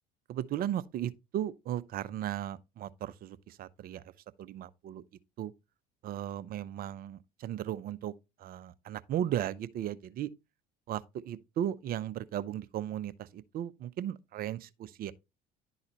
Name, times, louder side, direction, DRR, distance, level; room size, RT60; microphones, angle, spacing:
voice 1, 0.3-4.1 4.4-5.0 5.4-5.5 6.0-8.1 8.4-10.3 10.9-15.1, right 11 dB, 45° right, 0.6 m, -36 dB
11.0 x 4.0 x 2.9 m
hypercardioid pair, 80°, 20 cm